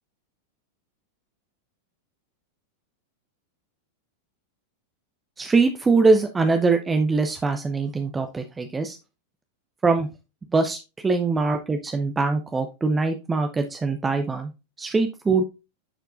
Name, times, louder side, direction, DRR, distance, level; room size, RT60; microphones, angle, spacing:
voice 1, 5.4-9.0 9.8-10.1 10.5-14.5 14.8-15.4, right 3 dB, 15° right, 6 dB, 0.6 m, -22 dB
10.5 x 4.5 x 2.5 m, 0.28 s
figure-of-eight pair, 90°, 0 cm